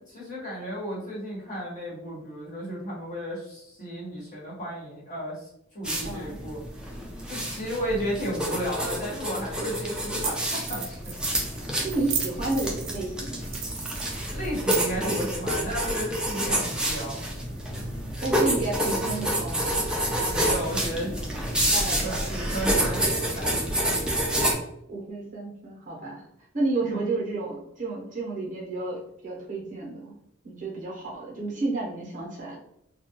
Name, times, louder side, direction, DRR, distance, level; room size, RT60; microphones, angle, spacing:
voice 1, 0.1-5.5 5.7-6.6 7.3-11.1 14.3-17.2 20.3-24.0 26.9-27.0, equal, 40° left, -7 dB, 1.1 m, -34 dB
sound 1, 5.8-24.5, right 1 dB, 5° right, 0.3 m, -28 dB
voice 2, 6.0-6.4 11.7-13.4 18.2-19.8 21.7-22.4 24.9-26.2 26.5-30.1 30.4-32.6, right 2 dB, 40° right, -3 dB, 0.7 m, -31 dB
sound 2, 10.2-10.3 10.6-11.4 11.9-13.1 13.5-15.1, right 7 dB, 70° right, 0.4 m, -33 dB
2.3 x 2.2 x 2.8 m, 0.76 s
head